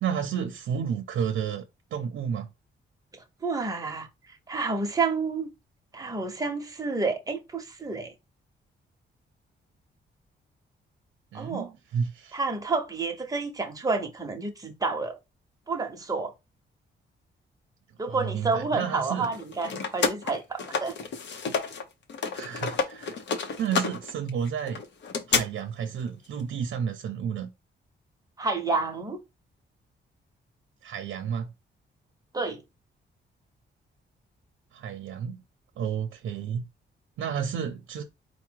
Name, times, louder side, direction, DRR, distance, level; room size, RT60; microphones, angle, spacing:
voice 1, 0.0-1.7 1.9-2.5 11.3-12.4 18.1-19.3 22.3-23.2 23.6-24.8 25.3-27.5 30.8-31.5 34.7-35.4 35.8-36.7 37.2-38.0, right 7 dB, 80° right, 0.6 m, -31 dB
voice 2, 3.4-5.5 5.9-8.1 11.3-11.7 12.3-15.2 15.7-16.3 18.0-21.0 28.4-29.2 32.3-32.6, right 4 dB, 20° right, 0.8 m, -29 dB
sound 1, 19.2-21.8 22.1-25.4, left 5 dB, 65° left, 0.7 m, -29 dB
4.6 x 2.1 x 4.5 m
wide cardioid pair, 145°, 20 cm